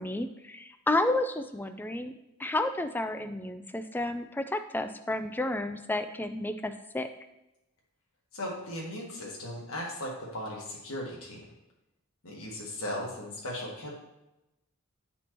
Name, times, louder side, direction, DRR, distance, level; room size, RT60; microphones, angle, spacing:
voice 1, 0.0-2.1 2.4-7.1, left 2 dB, 10° left, 9 dB, 0.3 m, -31 dB
voice 2, 8.3-11.4 12.2-13.9, left 1 dB, 80° left, -3 dB, 1.4 m, -37 dB
10.0 x 4.3 x 3.0 m, 0.93 s
head